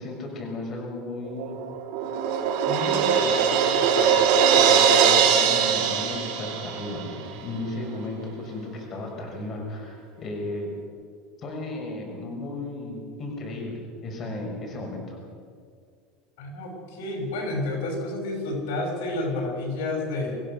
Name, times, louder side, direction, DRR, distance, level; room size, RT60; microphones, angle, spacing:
voice 1, 0.0-1.6 2.7-10.7 11.4-15.2, left 2 dB, 35° left, 0 dB, 5.6 m, -35 dB
Crash cymbal, 1.4-7.1, right 7 dB, 70° right, 3.9 m, -21 dB
voice 2, 16.4-20.4, left 2 dB, 85° left, 2 dB, 6.3 m, -30 dB
26.0 x 16.0 x 6.6 m, 2.1 s
supercardioid pair, 145°, 0 cm